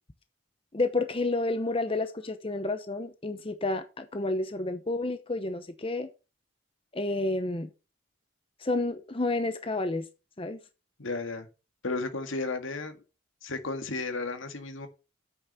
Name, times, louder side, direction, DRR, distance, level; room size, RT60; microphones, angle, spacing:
voice 1, 0.7-6.1 6.9-7.7 8.6-10.0 10.4-10.6, left 2 dB, 25° left, 0.8 m, -30 dB
voice 2, 11.0-11.5 11.8-13.0 13.4-14.9, left 3 dB, 85° left, 1.8 m, -33 dB
8.5 x 6.4 x 5.8 m
head